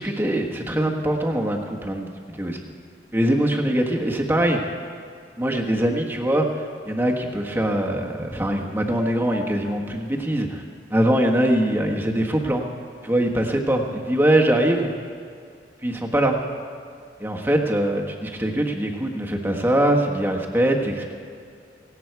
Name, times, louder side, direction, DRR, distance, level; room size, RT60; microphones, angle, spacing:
voice 1, 0.0-2.6 3.1-4.6 5.4-10.6 10.9-12.7 13.0-14.9 15.8-16.4 17.2-21.1, right 1 dB, 10° right, 1 dB, 1.4 m, -22 dB
17.5 x 17.0 x 4.7 m, 2.3 s
head